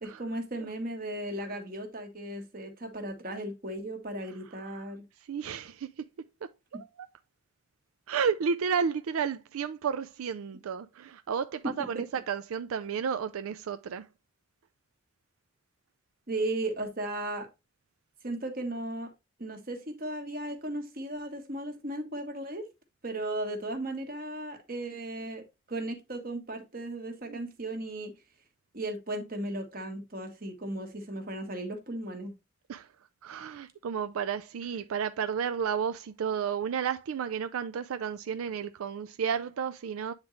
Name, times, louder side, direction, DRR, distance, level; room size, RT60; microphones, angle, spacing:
voice 1, 0.0-5.1 6.7-6.8 11.6-12.0 16.3-17.5 18.2-19.1 19.4-22.7 23.0-28.1 28.7-32.3, right 1 dB, 40° right, 1.3 m, -36 dB
voice 2, 5.3-6.0 6.4-7.1 8.1-14.1 27.3-27.4 32.7-32.9 33.2-40.1, right 7 dB, 90° right, 0.4 m, -32 dB
8.8 x 3.7 x 3.1 m
head